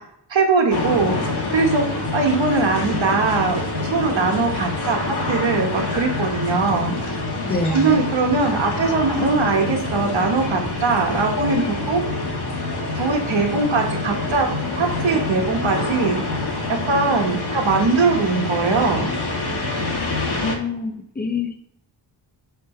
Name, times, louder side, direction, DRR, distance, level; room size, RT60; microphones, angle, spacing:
voice 1, 0.3-7.0 7.7-12.2 12.9-16.2 16.8-19.1, right 4 dB, 85° right, 1 dB, 1.4 m, -21 dB
sound 1, 0.7-20.6, left 3 dB, 60° left, 1.3 m, -26 dB
voice 2, 7.4-8.0 20.3-21.6, left 3 dB, 20° left, 6 dB, 0.6 m, -26 dB
6.9 x 3.4 x 4.3 m, 0.71 s
wide cardioid pair, 170°, 45 cm